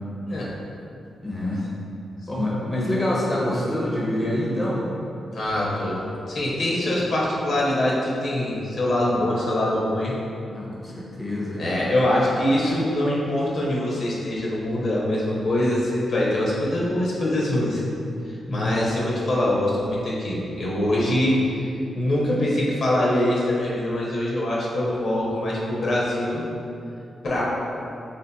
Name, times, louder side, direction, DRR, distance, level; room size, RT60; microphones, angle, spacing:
voice 1, 1.2-1.6 2.3-4.9 10.5-11.6 18.5-18.8, left 1 dB, 20° left, -5 dB, 0.5 m, -26 dB
voice 2, 5.3-6.0 6.3-10.1 11.6-17.8 18.3-21.6 21.9-26.4 27.2-27.4, left 1 dB, 65° left, -5 dB, 0.7 m, -23 dB
3.4 x 2.7 x 2.2 m, 2.6 s
cardioid pair, 95°, 0 cm